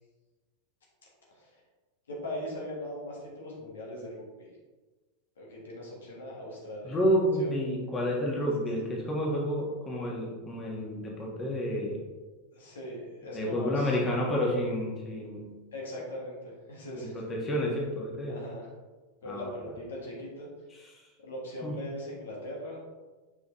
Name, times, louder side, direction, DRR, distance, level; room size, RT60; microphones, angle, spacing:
voice 1, 2.1-4.5 5.4-7.0 7.4-7.5 12.5-14.0 15.7-17.2 18.3-18.7 19.2-20.5 21.2-22.9, left 1 dB, 75° left, -3 dB, 1.5 m, -40 dB
voice 2, 6.8-12.0 13.3-15.5 17.0-18.4 19.3-19.5 20.9-21.0 21.6-21.7, equal, 25° left, -2 dB, 1.6 m, -30 dB
6.1 x 5.3 x 3.1 m, 1.3 s
figure-of-eight pair, 90°, 0 cm